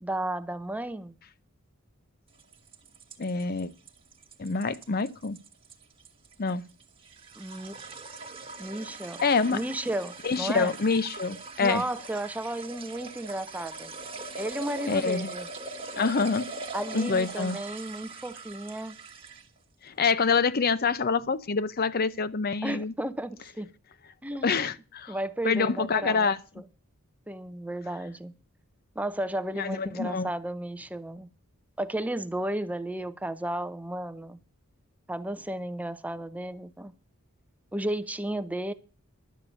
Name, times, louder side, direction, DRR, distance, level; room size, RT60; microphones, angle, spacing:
voice 1, 0.0-1.1 7.4-7.7 8.6-9.2 9.5-10.7 11.6-13.9 14.4-15.5 16.7-19.0 22.6-23.7 24.2-24.7 25.1-26.6 27.3-28.3 29.0-31.3 31.8-34.4 35.1-36.9 37.7-38.7, right 1 dB, 5° right, 0.6 m, -33 dB
sound 1, 2.4-19.6, right 3 dB, 25° right, 1.5 m, -41 dB
voice 2, 3.2-3.7 4.4-5.4 6.4-6.6 9.2-9.6 10.2-11.8 14.9-15.3 16.0-16.5 16.9-17.6 19.8-22.9 24.4-25.2 25.4-26.4 29.6-30.3, left 4 dB, 45° left, 0.6 m, -26 dB
11.5 x 6.5 x 8.5 m
head